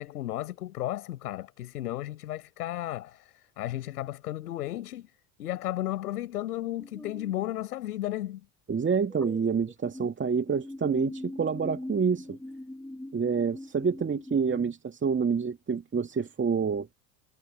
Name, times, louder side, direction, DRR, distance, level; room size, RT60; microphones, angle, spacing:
voice 1, 0.0-5.1 5.4-8.4, left 14 dB, 80° left, 6.6 m, -34 dB
sound 1, 6.8-7.3 9.1-10.1 10.5-14.6, left 1 dB, 5° left, 7.6 m, -42 dB
voice 2, 8.7-12.4 13.1-16.9, right 6 dB, 25° right, 2.4 m, -27 dB
hypercardioid pair, 75°, 45 cm